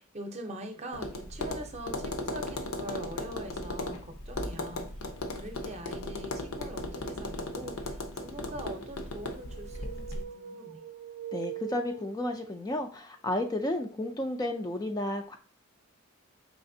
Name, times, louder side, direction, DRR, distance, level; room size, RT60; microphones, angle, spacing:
voice 1, 0.0-10.8, right 1 dB, 30° right, 5 dB, 0.6 m, -43 dB
Tap, 0.9-10.2, left 2 dB, 80° left, 0.8 m, -37 dB
sound 1, 9.1-12.7, right 9 dB, 85° right, 0.4 m, -43 dB
voice 2, 11.3-15.4, left 1 dB, 20° left, 5 dB, 0.3 m, -32 dB
4.9 x 3.3 x 2.6 m, 0.39 s
head